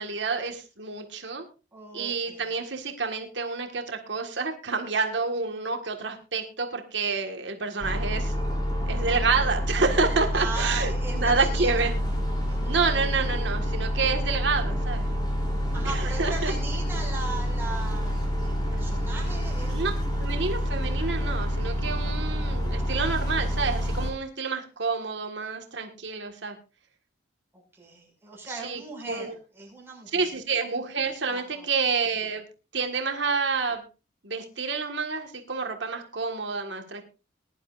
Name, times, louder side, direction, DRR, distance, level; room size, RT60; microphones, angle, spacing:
voice 1, 0.0-1.4 1.9-8.4 8.9-11.9 12.7-15.0 15.8-16.5 19.7-19.9 20.2-26.5 28.6-28.8 29.1-29.3 30.1-32.4 32.7-33.8 34.2-37.0, right 4 dB, 65° right, 4 dB, 1.7 m, -28 dB
voice 2, 1.7-2.5 10.3-11.9 12.5-12.8 15.7-20.0 27.7-30.2 31.3-31.7, right 3 dB, 10° right, -2 dB, 6.1 m, -38 dB
sound 1, 7.8-24.1, equal, 20° left, 3.3 m, -28 dB
20.5 x 11.0 x 2.5 m, 0.31 s
head